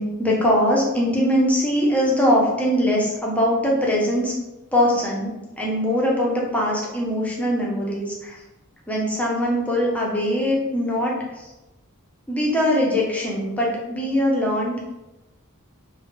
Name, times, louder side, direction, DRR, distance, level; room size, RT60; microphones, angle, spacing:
voice 1, 0.0-4.3 4.7-5.3 5.6-8.4 8.9-11.5 12.3-14.9, equal, 5° left, -3 dB, 0.5 m, -22 dB
2.3 x 2.1 x 2.9 m, 1.0 s
head